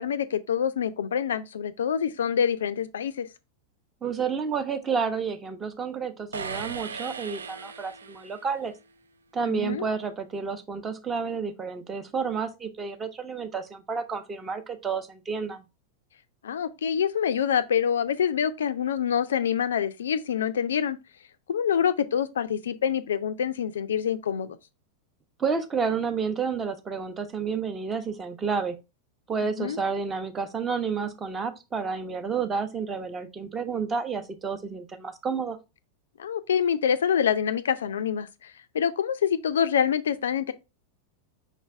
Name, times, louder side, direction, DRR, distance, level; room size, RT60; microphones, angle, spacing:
voice 1, 0.0-3.3 9.5-9.9 16.4-21.0 21.5-24.6 29.6-29.8 36.2-40.5, left 8 dB, 65° left, 0.3 m, -26 dB
voice 2, 4.0-8.7 9.3-15.6 25.4-28.8 29.3-35.6, right 5 dB, 20° right, 0.7 m, -30 dB
sound 1, 6.3-8.6, right 6 dB, 70° right, 0.3 m, -37 dB
5.1 x 3.2 x 3.2 m
figure-of-eight pair, 90°, 0 cm